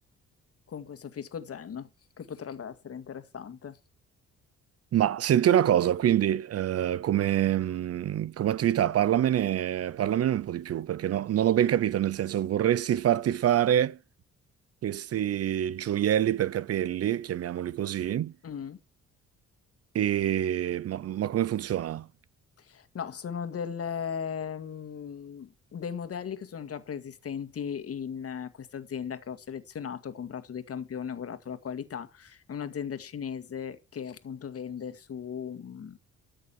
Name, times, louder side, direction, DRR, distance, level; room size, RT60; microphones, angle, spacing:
voice 1, 0.7-1.9 2.2-3.8 18.4-18.8 22.6-36.0, left 7 dB, 50° left, 1.9 m, -37 dB
voice 2, 4.9-14.0 14.8-18.3 19.9-22.1, right 11 dB, 55° right, 0.6 m, -26 dB
13.5 x 6.5 x 7.1 m
cardioid pair, 90°, 30 cm